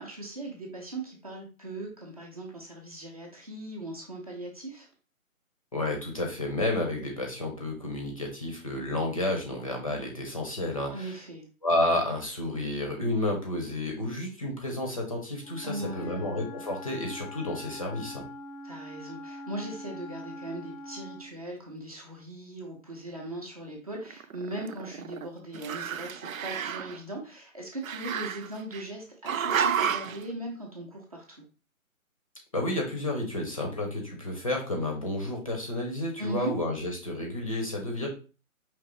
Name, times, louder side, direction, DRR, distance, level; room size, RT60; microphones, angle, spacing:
voice 1, 0.0-4.9 10.9-11.5 15.6-16.3 18.6-31.4 36.2-36.5, right 2 dB, 25° right, 0 dB, 0.8 m, -39 dB
voice 2, 5.7-11.2 11.6-18.2 32.5-38.1, left 1 dB, 25° left, 1 dB, 0.7 m, -31 dB
Wind instrument woodwind instrument, 15.4-21.4, left 1 dB, 80° left, 0.7 m, -43 dB
Growling, 24.0-25.3 25.5-27.0 27.8-28.8 29.3-30.2, right 8 dB, 75° right, 0.5 m, -31 dB
5.2 x 3.1 x 3.0 m, 0.35 s
hypercardioid pair, 165°, 42 cm